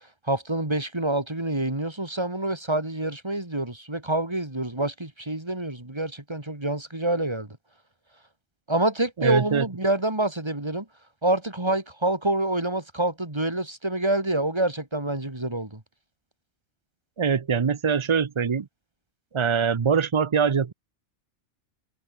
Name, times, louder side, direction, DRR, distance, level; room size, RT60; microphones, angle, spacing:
voice 1, 0.3-7.5 8.7-10.9 11.2-15.8, right 1 dB, 20° right, 2.8 m, -27 dB
voice 2, 9.2-9.6 17.2-18.7 19.3-20.7, right 6 dB, 50° right, 0.3 m, -23 dB
omnidirectional pair, 1.4 m